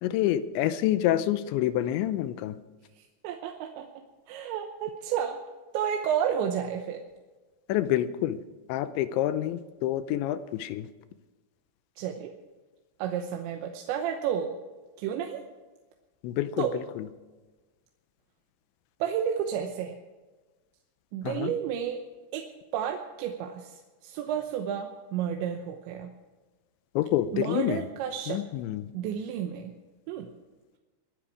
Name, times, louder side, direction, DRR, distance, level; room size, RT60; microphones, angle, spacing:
voice 1, 0.0-2.6 7.7-8.4 8.7-10.9 16.2-17.1 21.2-21.5 27.0-27.8 28.3-28.9, left 12 dB, 85° left, 12 dB, 3.0 m, -27 dB
voice 2, 3.0-3.9 4.3-5.4 5.7-7.0 12.0-12.3 13.0-14.5 15.0-15.4 16.6-16.8 19.0-20.0 21.1-22.0 22.3-26.1 27.3-28.4 28.9-29.8 30.1-30.3, right 8 dB, 80° right, 4 dB, 3.2 m, -31 dB
23.0 x 10.0 x 4.8 m, 1.2 s
omnidirectional pair, 5.3 m